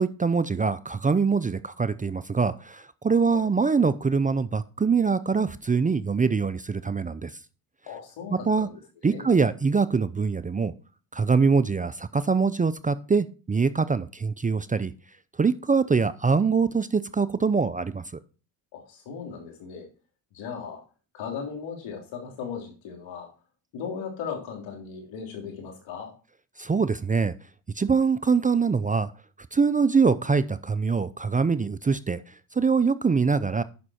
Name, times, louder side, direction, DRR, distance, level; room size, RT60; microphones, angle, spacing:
voice 1, 0.0-7.3 8.3-8.7 9.0-10.7 11.1-14.9 15.4-18.0 26.6-27.3 27.8-29.1 29.5-33.6, right 5 dB, 20° right, 14 dB, 0.5 m, -24 dB
voice 2, 7.9-9.4 18.7-19.9 20.3-20.8 21.1-23.3 23.7-26.1, left 6 dB, 80° left, 1 dB, 3.4 m, -37 dB
9.5 x 6.1 x 4.3 m, 0.35 s
supercardioid pair, 75°, 46 cm